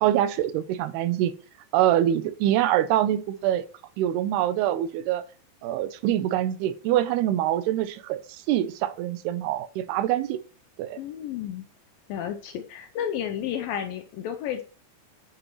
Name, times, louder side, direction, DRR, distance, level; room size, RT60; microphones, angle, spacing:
voice 1, 0.0-1.3 1.7-3.6 4.0-5.2 5.6-10.4 10.8-11.0, right 12 dB, 80° right, 2.6 m, -24 dB
voice 2, 11.0-11.7 12.1-14.6, left 9 dB, 80° left, 2.1 m, -32 dB
9.3 x 8.1 x 3.1 m
omnidirectional pair, 4.8 m